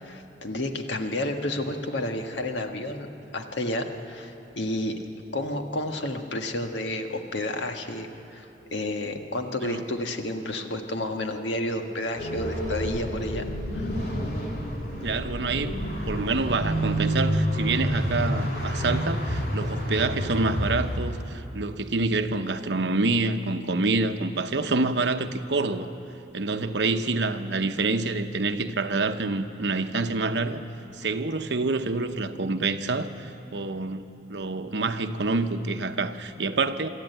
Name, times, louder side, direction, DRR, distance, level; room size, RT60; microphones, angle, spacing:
voice 1, 0.0-3.1 3.3-4.9 5.3-8.5 8.7-13.4 13.7-13.9, left 1 dB, 90° left, 4 dB, 1.5 m, -31 dB
sound 1, 12.2-21.0, equal, 60° left, 3.1 m, -28 dB
voice 2, 15.0-15.7 16.0-25.9 26.3-30.6 30.9-36.9, right 3 dB, 75° right, 8 dB, 0.9 m, -27 dB
24.5 x 13.0 x 9.2 m, 2.9 s
head